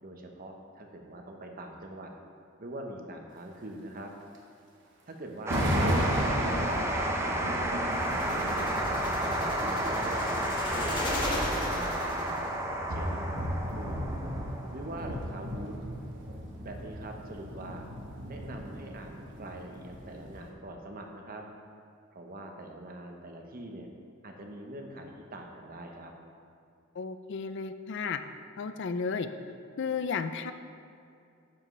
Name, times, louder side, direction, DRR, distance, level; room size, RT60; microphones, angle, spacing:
voice 1, 0.0-2.1 2.6-4.1 5.1-7.4 8.1-8.7 9.0-10.3 10.7-12.4 12.9-13.3 13.7-14.0 14.7-15.8 16.6-17.9 18.3-21.4 22.1-23.9 24.2-26.1, right 1 dB, 45° right, 2 dB, 1.0 m, -43 dB
sound 1, 4.3-4.4 5.5-20.5, equal, 60° right, 1.2 m, -35 dB
sound 2, 5.5-18.4, right 1 dB, 15° right, 0.7 m, -32 dB
sound 3, 7.9-12.5, left 1 dB, 25° left, 1.5 m, -36 dB
voice 2, 27.0-28.2 28.6-29.3 29.8-30.5, left 5 dB, 60° left, 10 dB, 0.4 m, -33 dB
10.5 x 7.5 x 3.3 m, 2.5 s
head